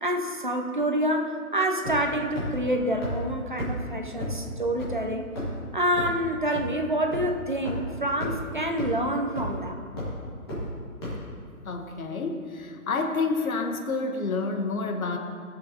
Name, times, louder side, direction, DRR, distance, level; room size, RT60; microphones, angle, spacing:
voice 1, 0.0-5.3 5.7-9.8, right 1 dB, 35° right, 3 dB, 0.5 m, -27 dB
sound 1, 1.8-2.1 2.4-2.5 3.0-3.1 3.6-3.7 4.2-4.3 4.8-4.9 5.4-5.6 6.0-6.1 6.5-6.6 7.1-7.2 7.6-7.7 8.2-8.3 8.8-8.9 9.4-9.6 10.0-10.1 10.5-10.6 11.0-11.1, left 1 dB, 15° left, 1.7 m, -32 dB
voice 2, 11.7-15.2, left 3 dB, 70° left, 5 dB, 1.2 m, -29 dB
15.0 x 6.8 x 2.8 m, 2.3 s
hypercardioid pair, 175°, 44 cm